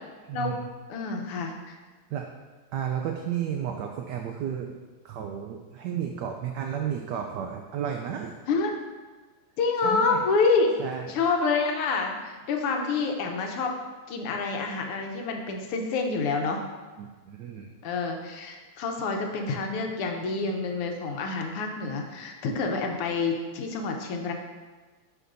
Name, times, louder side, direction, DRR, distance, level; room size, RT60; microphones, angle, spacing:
voice 1, 0.3-0.7 2.1-2.3 2.7-4.7 5.0-8.4 9.8-10.3 10.8-11.2 14.3-14.5 17.0-17.7, right 9 dB, 90° right, 3 dB, 0.9 m, -33 dB
voice 2, 0.9-1.8 8.5-8.7 9.6-10.8 11.1-13.8 14.1-16.6 17.8-24.3, left 4 dB, 90° left, 3 dB, 1.7 m, -27 dB
11.0 x 5.1 x 2.6 m, 1.4 s
omnidirectional pair, 2.4 m